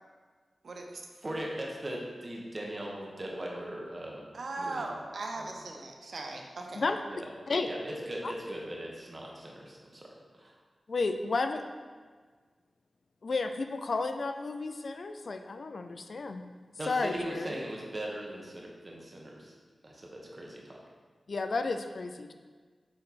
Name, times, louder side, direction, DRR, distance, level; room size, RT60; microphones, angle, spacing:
voice 1, 0.6-1.0 4.3-6.8, right 2 dB, 75° right, 2 dB, 0.6 m, -38 dB
voice 2, 1.2-4.2 4.6-4.9 5.4-5.5 7.1-7.3 7.7-10.1 10.3-10.6 16.8-19.5 19.8-20.8, right 1 dB, 40° right, -1 dB, 1.2 m, -39 dB
voice 3, 10.9-11.6 13.2-16.4 16.9-17.6 21.3-22.3, left 3 dB, 65° left, 7 dB, 0.4 m, -32 dB
7.0 x 3.3 x 4.1 m, 1.5 s
cardioid pair, 50°, 0 cm